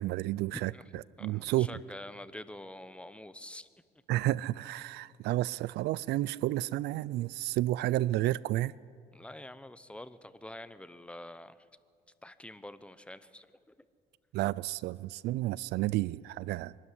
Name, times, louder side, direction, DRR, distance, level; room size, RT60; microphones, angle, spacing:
voice 1, 0.0-1.7 4.1-8.7 14.3-16.8, right 16 dB, 80° right, 0.4 m, -31 dB
voice 2, 1.2-3.7 9.1-11.7 12.2-13.7, left 1 dB, 5° left, 0.8 m, -47 dB
24.0 x 12.5 x 9.8 m
cardioid pair, 110°, 17 cm